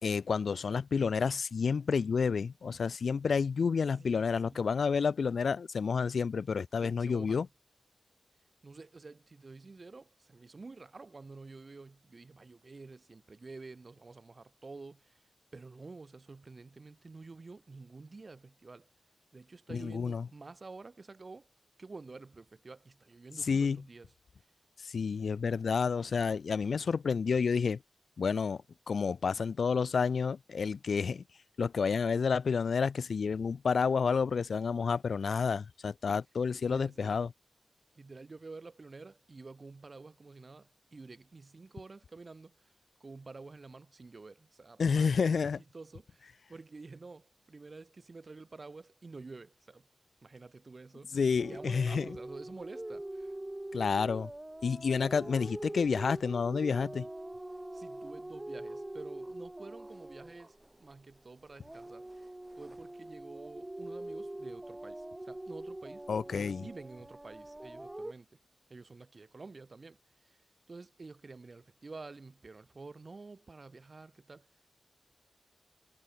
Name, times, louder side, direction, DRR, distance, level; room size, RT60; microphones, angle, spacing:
voice 1, 0.0-7.5 19.7-20.3 23.4-23.8 24.8-27.8 28.2-31.2 31.6-37.3 44.8-45.6 51.1-52.0 53.7-54.3 54.6-57.1 66.1-66.7, left 5 dB, 75° left, 0.7 m, -30 dB
voice 2, 4.0-4.7 6.8-7.5 8.6-15.2 15.5-18.9 19.3-21.5 21.8-24.1 36.1-36.2 36.6-37.2 37.9-42.7 43.0-45.5 45.7-49.9 50.2-51.2 51.5-53.3 57.7-62.3 62.6-66.1 66.3-68.3 68.7-70.4 70.7-74.5, right 3 dB, 45° right, 1.9 m, -50 dB
sound 1, 51.4-61.2 61.5-68.1, right 1 dB, 20° right, 2.9 m, -44 dB
wide cardioid pair, 70°, 0 cm